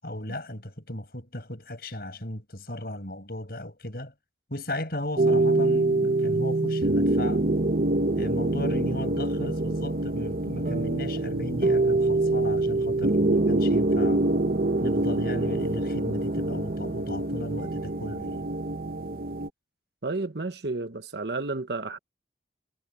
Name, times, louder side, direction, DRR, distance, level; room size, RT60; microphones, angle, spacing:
voice 1, 0.0-4.1 4.5-7.4 8.2-14.2 14.8-18.4, left 1 dB, 55° left, 7.4 m, -36 dB
sound 1, 5.2-19.5, right 2 dB, 55° right, 1.0 m, -25 dB
voice 2, 20.0-22.0, right 3 dB, 70° right, 1.2 m, -31 dB
head